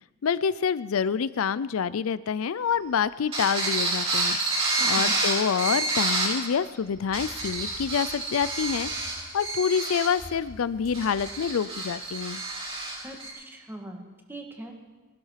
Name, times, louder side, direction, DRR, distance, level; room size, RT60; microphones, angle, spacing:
voice 1, 0.2-4.4 4.9-8.9 9.3-12.4, left 7 dB, 75° left, 17 dB, 0.4 m, -27 dB
sound 1, 3.3-6.4 7.0-13.3, right 2 dB, 30° right, 7.0 m, -29 dB
voice 2, 4.8-5.1 13.0-14.7, right 1 dB, 10° right, 2 dB, 2.1 m, -41 dB
19.0 x 12.0 x 5.8 m, 1.3 s
head